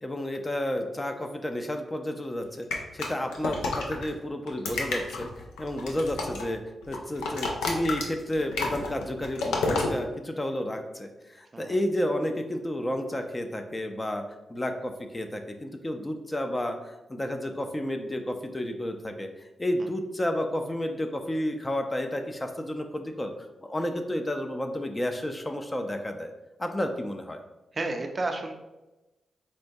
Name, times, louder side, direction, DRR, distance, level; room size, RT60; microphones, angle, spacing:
voice 1, 0.0-5.3 5.6-6.6 6.9-14.2 14.5-19.3 19.6-23.3 23.6-26.3 26.6-27.4, left 1 dB, 25° left, 5 dB, 0.4 m, -31 dB
sound 1, 2.7-4.1 4.5-6.5 6.8-9.9, left 3 dB, 90° left, 0.4 m, -30 dB
voice 2, 27.8-28.5, right 2 dB, 45° right, 4 dB, 0.4 m, -31 dB
4.3 x 2.2 x 2.7 m, 1.0 s
supercardioid pair, 45°, 0 cm